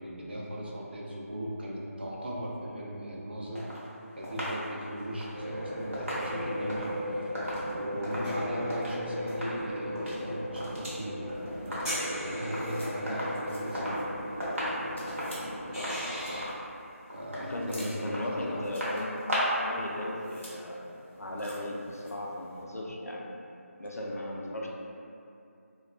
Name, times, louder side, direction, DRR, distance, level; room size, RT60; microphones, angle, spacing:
voice 1, 0.0-3.6 4.2-6.9 7.7-14.1 17.1-18.8, equal, 45° right, -4 dB, 0.4 m, -38 dB
sound 1, 3.6-9.0 9.3-9.6 9.9-11.0 11.3-12.1 12.4-12.7 13.1-14.1 14.4-19.7 20.0-20.1, equal, 60° right, 0.8 m, -36 dB
sound 2, 5.3-16.4, equal, 15° left, 0.5 m, -36 dB
sound 3, 11.3-22.6, left 1 dB, 55° left, 0.6 m, -53 dB
voice 2, 17.4-19.2 19.6-20.9 21.2-23.3 23.8-24.7, left 1 dB, 90° left, -2 dB, 0.4 m, -36 dB
2.3 x 2.2 x 2.4 m, 2.6 s
figure-of-eight pair, 165°, 8 cm